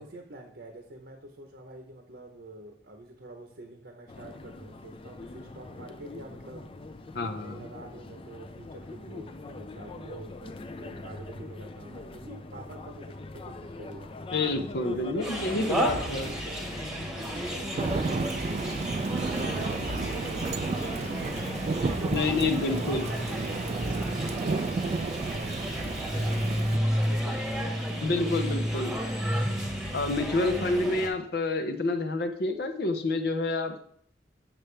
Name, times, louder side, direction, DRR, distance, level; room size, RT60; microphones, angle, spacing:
voice 1, 0.0-6.7 7.4-14.1 14.8-19.0 19.4-21.4 21.9-25.6 26.0-28.4, right 1 dB, 70° right, 3 dB, 0.9 m, -46 dB
sound 1, 4.1-23.5, left 2 dB, 30° left, 0.4 m, -43 dB
voice 2, 7.1-7.6 14.3-16.3 22.1-23.1 28.0-29.0 29.9-33.8, left 2 dB, 60° left, 6 dB, 0.7 m, -28 dB
sound 2, 15.2-31.1, equal, 5° right, 1.1 m, -32 dB
Thunder / Rain, 17.8-26.8, right 4 dB, 40° right, 0.3 m, -32 dB
7.5 x 7.0 x 3.3 m, 0.65 s
head